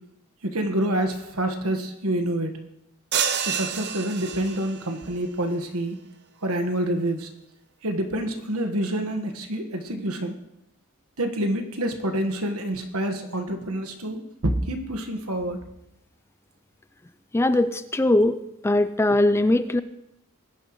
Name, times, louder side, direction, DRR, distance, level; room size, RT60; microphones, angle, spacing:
voice 1, 0.4-2.5 3.5-6.0 6.4-7.3 7.8-10.4 11.2-15.6, right 1 dB, 75° right, 6 dB, 1.5 m, -27 dB
sound 1, 3.1-4.9, right 7 dB, 50° right, 0.9 m, -28 dB
voice 2, 17.3-18.4 18.6-19.8, left 1 dB, 10° left, 11 dB, 0.4 m, -20 dB
20.0 x 10.5 x 3.1 m, 0.83 s
head